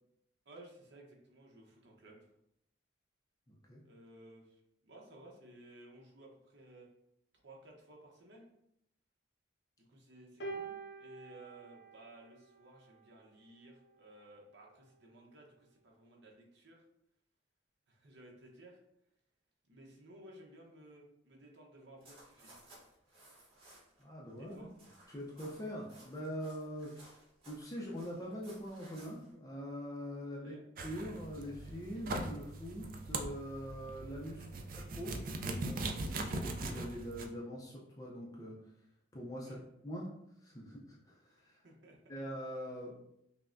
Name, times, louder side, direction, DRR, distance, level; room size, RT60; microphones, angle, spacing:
voice 1, 0.5-2.3 3.8-6.9 7.4-8.5 9.9-16.8 17.9-18.8 19.7-22.6 24.4-24.7 30.4-30.6 34.5-34.7 39.4-39.6 41.6-42.0, right 1 dB, 65° right, -1 dB, 0.9 m, -57 dB
voice 2, 3.5-3.8 24.0-24.6 25.1-27.1 27.5-30.5 30.8-34.5 34.7-38.6 39.1-39.6 39.8-40.1 40.4-41.6 42.1-43.0, equal, 20° left, -4 dB, 0.5 m, -43 dB
sound 1, 10.4-12.9 13.9-14.1, right 3 dB, 60° left, 0.6 m, -46 dB
sound 2, 22.0-24.0 24.3-29.3, right 1 dB, 30° right, 1.4 m, -59 dB
sound 3, 30.8-37.2, right 2 dB, 45° right, 0.4 m, -40 dB
5.5 x 2.1 x 2.5 m, 0.78 s
head